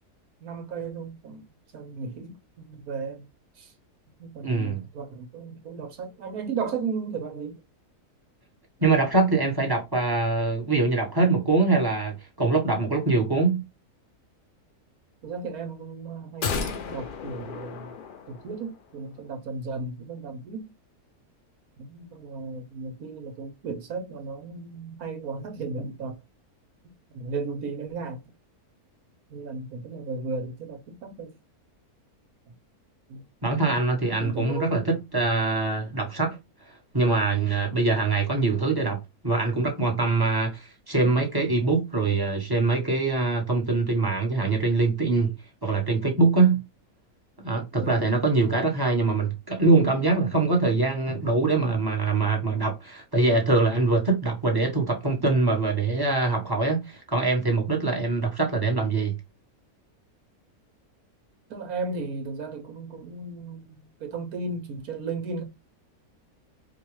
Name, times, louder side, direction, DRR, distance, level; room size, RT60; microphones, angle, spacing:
voice 1, 0.4-1.5 1.7-3.2 3.6-3.7 4.2-7.6 15.2-17.9 18.3-20.7 21.8-26.2 27.1-28.2 29.3-31.3 33.1-34.7 47.8-48.1 61.5-65.4, right 4 dB, 70° right, 1.4 m, -35 dB
voice 2, 4.4-4.8 8.8-13.6 33.4-36.4 36.9-45.3 45.6-46.6 47.4-59.2, right 3 dB, 15° right, 1.0 m, -23 dB
sound 1, 16.4-18.8 19.1-19.2, left 5 dB, 85° left, 0.4 m, -33 dB
5.1 x 2.2 x 3.1 m
omnidirectional pair, 1.6 m